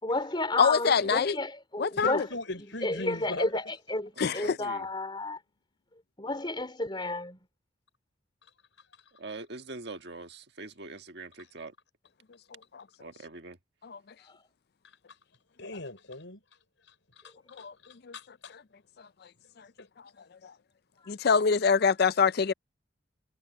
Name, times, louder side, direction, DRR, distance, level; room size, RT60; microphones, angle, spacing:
voice 1, 0.0-2.3 2.8-5.4 6.2-7.4 14.3-14.4, left 2 dB, 25° left, 3.8 m, -32 dB
voice 2, 0.6-1.4 1.8-2.3 4.2-4.6 12.7-12.8 13.8-14.0 17.6-17.7 18.0-18.1 19.6-19.7 20.4-20.5 21.1-22.5, left 5 dB, 55° left, 0.5 m, -25 dB
voice 3, 1.9-3.5 8.4-8.5 8.8-9.1 11.4-11.5 14.8-15.2 15.6-16.4 16.8-18.6 19.8-19.9, left 2 dB, 75° left, 5.9 m, -40 dB
voice 4, 4.2-4.9 9.2-11.7 13.0-13.6, right 3 dB, 60° right, 1.7 m, -43 dB
head